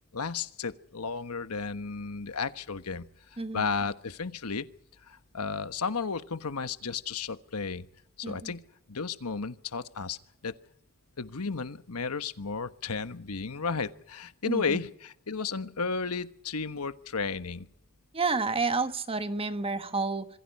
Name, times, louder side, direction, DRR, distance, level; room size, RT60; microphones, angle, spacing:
voice 1, 0.1-3.0 3.3-4.7 5.1-7.9 8.2-8.6 8.9-10.2 10.4-10.5 11.2-17.7, left 5 dB, 90° left, 11 dB, 1.2 m, -33 dB
voice 2, 8.2-8.5 14.5-14.8 18.1-20.3, right 3 dB, 25° right, 10 dB, 1.2 m, -30 dB
26.5 x 22.5 x 5.5 m, 0.73 s
head